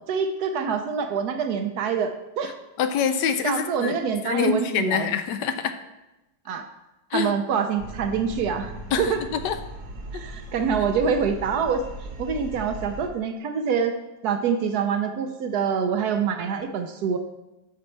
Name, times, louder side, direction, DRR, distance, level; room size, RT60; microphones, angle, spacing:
voice 1, 0.1-2.5 3.4-5.1 6.5-6.7 7.1-8.7 9.0-9.2 10.1-11.8 12.2-13.9 14.2-17.2, right 6 dB, 70° right, 7 dB, 1.0 m, -25 dB
voice 2, 2.8-3.9 4.2-5.8 7.1-7.3 8.9-9.1 9.4-9.6 10.1-10.2, left 7 dB, 75° left, 10 dB, 1.2 m, -25 dB
sound 1, 7.8-13.1, right 1 dB, 90° right, 1.7 m, -38 dB
8.4 x 6.0 x 4.4 m, 0.98 s
omnidirectional pair, 2.0 m